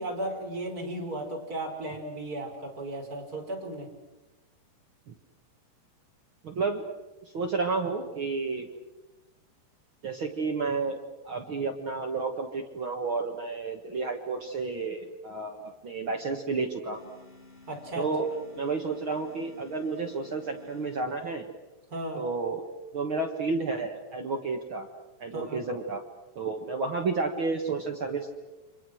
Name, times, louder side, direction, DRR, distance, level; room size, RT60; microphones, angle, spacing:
voice 1, 0.0-3.9 17.7-18.1 21.9-22.2 25.3-25.6, right 1 dB, 20° right, 1 dB, 5.3 m, -35 dB
voice 2, 6.4-6.8 7.3-8.7 10.0-17.0 17.9-21.4 22.1-22.6 22.9-24.9 25.2-26.0 26.3-28.3, right 4 dB, 60° right, 3 dB, 1.3 m, -31 dB
sound 1, 16.9-21.6, left 2 dB, 10° left, 4.8 m, -54 dB
30.0 x 26.0 x 6.4 m, 1.1 s
omnidirectional pair, 4.8 m